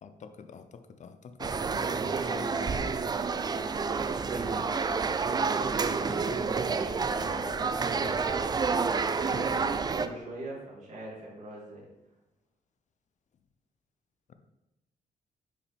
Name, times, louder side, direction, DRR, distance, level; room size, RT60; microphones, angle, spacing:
voice 1, 0.0-3.0 14.3-14.4, left 6 dB, 50° left, 9 dB, 0.6 m, -47 dB
sound 1, 1.4-10.1, right 5 dB, 25° right, 0.4 m, -29 dB
voice 2, 4.3-8.4 8.8-11.9, right 1 dB, 50° right, -6 dB, 2.5 m, -42 dB
7.2 x 4.9 x 3.5 m, 0.95 s
cardioid pair, 100°, 16 cm